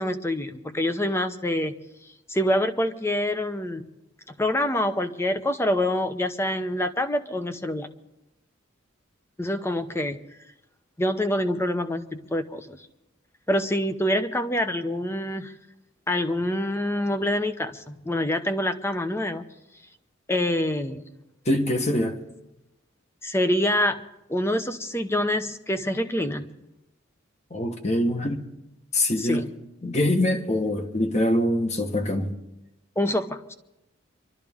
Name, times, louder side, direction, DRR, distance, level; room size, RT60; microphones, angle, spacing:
voice 1, 0.0-1.8 2.3-3.9 4.4-7.9 9.4-10.2 11.0-12.8 13.5-15.5 16.1-19.4 20.3-21.1 23.2-24.0 24.3-26.6 29.2-29.5 33.0-33.5, left 1 dB, 15° left, 0.8 m, -26 dB
voice 2, 21.4-22.2 27.5-28.4 28.9-29.5 29.8-32.3, left 1 dB, 35° left, 1.3 m, -24 dB
26.5 x 12.5 x 3.6 m
head